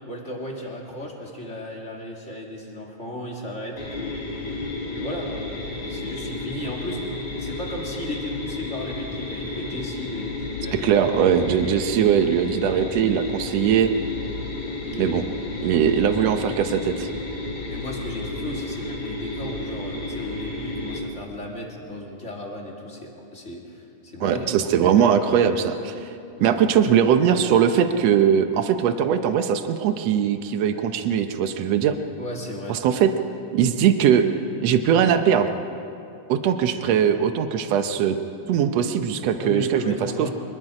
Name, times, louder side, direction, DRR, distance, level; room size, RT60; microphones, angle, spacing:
voice 1, 0.1-4.3 4.9-5.4 5.8-11.1 13.4-13.5 14.8-15.2 17.6-25.1 26.3-26.6 32.2-33.1 39.4-40.3, left 1 dB, 25° left, -2 dB, 2.2 m, -35 dB
sound 1, 3.8-21.0, left 2 dB, 55° left, 4.6 m, -32 dB
voice 2, 10.7-13.9 15.0-15.2 15.6-17.1 24.2-25.9 26.4-32.0 32.7-33.1 33.5-34.2 34.6-35.5 36.3-38.2 38.5-40.3, right 8 dB, 70° right, 8 dB, 1.6 m, -20 dB
25.5 x 21.5 x 4.9 m, 2.6 s
omnidirectional pair, 4.1 m